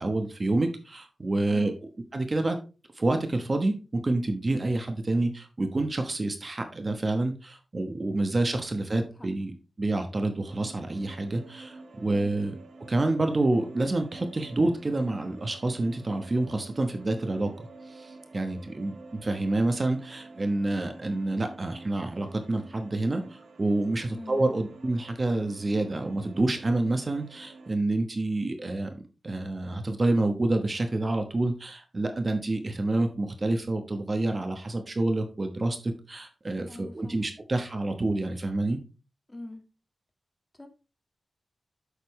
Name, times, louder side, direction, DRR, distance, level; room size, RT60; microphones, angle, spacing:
voice 1, 0.0-1.7 2.1-2.6 2.9-12.5 12.9-38.8, right 2 dB, 35° right, 6 dB, 1.1 m, -28 dB
voice 2, 8.9-9.3 12.1-12.3 24.1-24.4 36.7-37.3 39.3-39.6 40.5-40.7, left 1 dB, 20° left, 4 dB, 1.7 m, -43 dB
sound 1, 10.4-27.7, right 3 dB, 85° right, 2.5 m, -49 dB
8.2 x 6.6 x 3.2 m, 0.32 s
wide cardioid pair, 120°, 0 cm